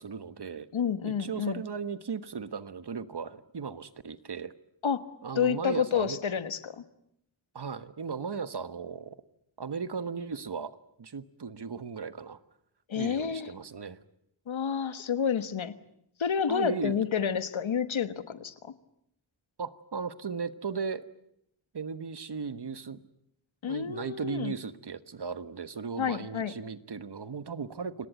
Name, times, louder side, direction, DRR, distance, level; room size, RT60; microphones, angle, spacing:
voice 1, 0.0-0.7 1.0-4.5 5.2-6.2 7.5-9.2 9.6-12.4 12.9-14.0 16.5-17.0 19.6-21.1 21.7-23.0 23.6-28.1, right 5 dB, 60° right, 13 dB, 1.4 m, -36 dB
voice 2, 0.7-1.6 4.8-5.1 5.3-6.8 12.9-13.5 14.5-15.7 16.2-18.7 23.6-24.5 26.0-26.5, left 7 dB, 85° left, 12 dB, 1.4 m, -29 dB
29.0 x 18.5 x 9.2 m, 0.77 s
cardioid pair, 45°, 46 cm